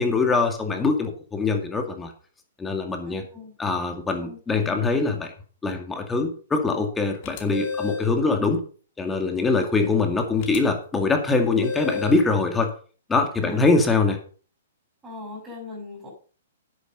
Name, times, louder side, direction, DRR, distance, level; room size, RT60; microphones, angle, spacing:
voice 1, 0.0-2.1 2.6-3.2 3.6-5.3 5.6-8.6 9.0-12.7 13.1-14.2, left 3 dB, 10° left, 5 dB, 2.2 m, -23 dB
voice 2, 3.0-3.6 4.2-4.9 13.4-13.8 15.0-16.1, left 3 dB, 15° right, 0 dB, 7.3 m, -40 dB
sound 1, 7.2-8.1 10.4-10.6 11.6-12.2, left 5 dB, 40° left, 2.5 m, -31 dB
10.0 x 8.9 x 5.5 m, 0.40 s
hypercardioid pair, 140°, 0 cm